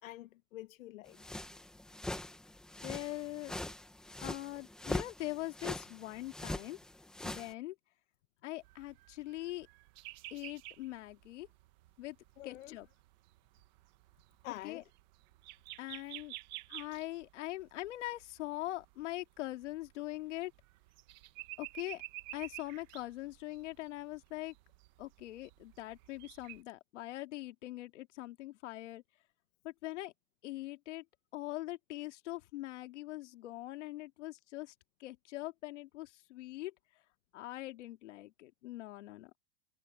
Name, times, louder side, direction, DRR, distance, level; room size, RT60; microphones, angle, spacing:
voice 1, 0.0-1.2 12.4-12.8 14.4-14.8, left 15 dB, 85° left, 1.1 m, -47 dB
sound 1, 1.2-7.5, left 1 dB, ahead, 0.9 m, -42 dB
voice 2, 2.8-3.5 4.2-6.8 7.2-7.8 8.4-9.7 10.3-11.5 12.0-12.2 12.4-12.9 14.5-14.8 15.8-16.3 16.7-20.5 21.6-22.0 22.3-24.5 25.0-29.0 29.6-30.1 30.4-31.0 31.3-34.7 35.0-36.7 37.3-39.3, left 17 dB, 65° left, 2.3 m, -42 dB
sound 2, 8.6-26.6, right 18 dB, 35° right, 1.1 m, -52 dB
supercardioid pair, 180°, 39 cm